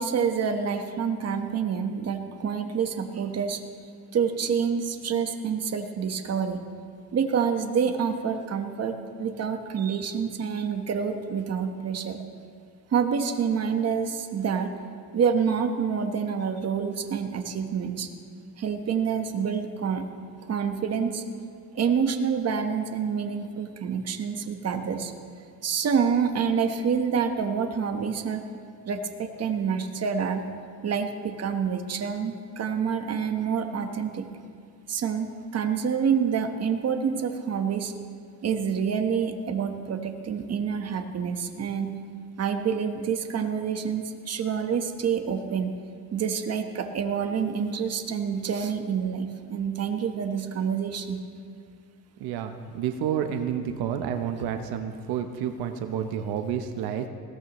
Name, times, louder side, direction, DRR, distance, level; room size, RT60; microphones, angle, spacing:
voice 1, 0.0-3.6 4.1-6.6 7.1-8.9 9.2-12.2 12.9-14.7 15.1-18.1 18.6-20.0 20.5-21.2 21.7-25.1 25.6-28.4 28.9-30.4 30.8-34.3 34.9-37.9 38.4-41.9 42.4-45.7 46.1-51.2, right 6 dB, 45° right, 5 dB, 1.3 m, -27 dB
voice 2, 52.2-57.1, right 8 dB, 90° right, 6 dB, 0.9 m, -30 dB
20.0 x 17.0 x 3.1 m, 2.2 s
cardioid pair, 115°, 37 cm